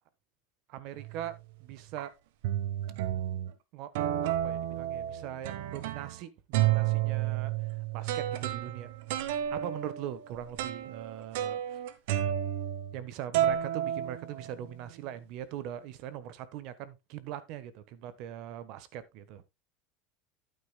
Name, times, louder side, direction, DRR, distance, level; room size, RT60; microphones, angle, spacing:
voice 1, 0.7-2.1 3.7-3.9 4.2-7.7 7.9-8.9 9.5-11.8 12.9-19.4, right 11 dB, 55° right, 1.2 m, -41 dB
sound 1, 1.0-1.4 2.0-2.1 2.4-3.5 4.0-6.2 6.5-13.1 13.3-14.7, right 12 dB, 75° right, 1.2 m, -31 dB
11.5 x 9.4 x 2.3 m
supercardioid pair, 145°, 0 cm